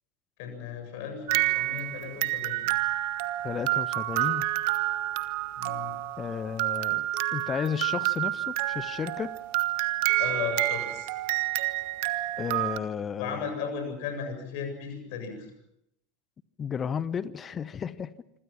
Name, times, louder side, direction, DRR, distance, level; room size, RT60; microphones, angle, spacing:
voice 1, 0.4-2.7 5.6-5.9 10.2-11.1 13.2-15.5, left 6 dB, 50° left, 5 dB, 7.7 m, -35 dB
sound 1, 1.3-12.8, right 18 dB, 50° right, 1.2 m, -29 dB
voice 2, 3.4-4.5 6.2-9.3 12.4-13.5 16.6-18.1, left 7 dB, 25° left, 17 dB, 1.0 m, -33 dB
26.5 x 25.0 x 5.8 m, 0.78 s
figure-of-eight pair, 85°, 0 cm